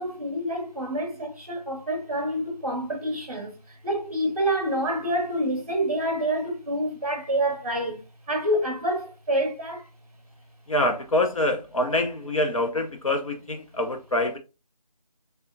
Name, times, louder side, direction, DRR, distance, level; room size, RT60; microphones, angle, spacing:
voice 1, 0.0-8.0 8.3-9.9, right 1 dB, 20° right, 0.9 m, -27 dB
voice 2, 10.7-14.4, left 1 dB, 55° left, 0.7 m, -25 dB
4.7 x 3.4 x 2.6 m
figure-of-eight pair, 175°, 21 cm